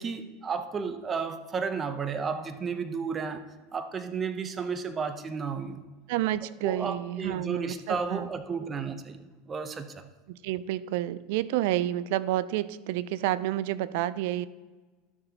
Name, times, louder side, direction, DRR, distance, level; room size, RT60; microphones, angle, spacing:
voice 1, 0.0-3.4 3.7-5.8 6.6-10.1, right 5 dB, 25° right, 9 dB, 0.7 m, -33 dB
voice 2, 6.1-8.3 10.3-14.5, right 14 dB, 70° right, 17 dB, 0.3 m, -29 dB
13.0 x 6.7 x 2.9 m, 1.3 s
supercardioid pair, 110°, 0 cm